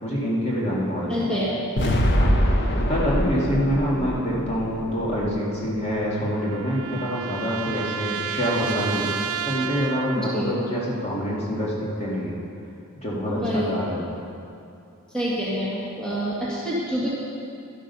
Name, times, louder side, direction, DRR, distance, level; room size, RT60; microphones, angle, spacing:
voice 1, 0.0-1.1 2.1-2.3 2.9-9.1 9.4-12.3 13.0-14.1, equal, 30° left, -5 dB, 2.1 m, -26 dB
voice 2, 1.1-1.6 10.2-10.5 13.4-13.7 15.1-17.1, equal, 5° left, -9 dB, 1.8 m, -26 dB
sound 1, 1.8-5.9, equal, 50° left, 1.0 m, -24 dB
sound 2, 5.8-10.5, right 7 dB, 75° right, 0.5 m, -32 dB
12.0 x 8.8 x 5.5 m, 2.6 s
head